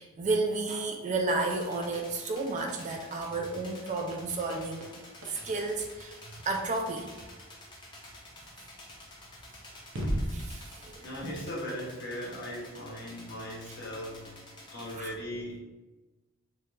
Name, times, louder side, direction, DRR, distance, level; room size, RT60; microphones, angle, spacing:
voice 1, 0.0-7.1 10.3-11.3 15.0-15.1, right 3 dB, 35° right, 2 dB, 0.3 m, -32 dB
sound 1, 1.3-14.9, left 1 dB, 20° left, 0.6 m, -50 dB
sound 2, 4.1-6.8 9.0-9.1 9.8-10.4, equal, 65° right, 0.6 m, -39 dB
voice 2, 11.0-15.6, equal, 50° left, -4 dB, 0.9 m, -39 dB
3.0 x 2.4 x 3.2 m, 1.2 s
head